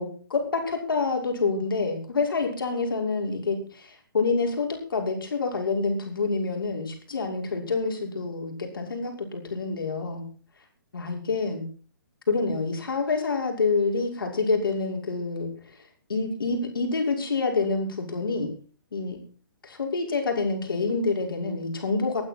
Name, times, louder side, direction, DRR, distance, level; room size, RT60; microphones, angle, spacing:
voice 1, 0.0-10.2 10.9-11.6 12.3-15.8 16.1-18.5 18.9-19.2 19.6-22.2, left 4 dB, 75° left, 2 dB, 6.1 m, -27 dB
23.0 x 9.6 x 4.6 m, 0.39 s
hypercardioid pair, 135°, 12 cm